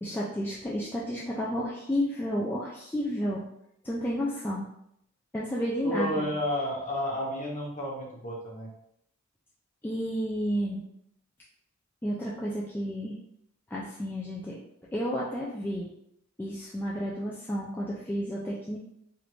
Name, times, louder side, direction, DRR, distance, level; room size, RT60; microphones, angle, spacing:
voice 1, 0.0-3.5 3.8-4.7 5.3-6.3 9.8-10.8 12.0-13.2 13.7-14.6 14.9-15.9 16.4-18.8, equal, 10° left, -6 dB, 0.3 m, -31 dB
voice 2, 5.8-8.7, left 1 dB, 35° left, -4 dB, 1.0 m, -31 dB
3.4 x 2.5 x 3.0 m, 0.77 s
head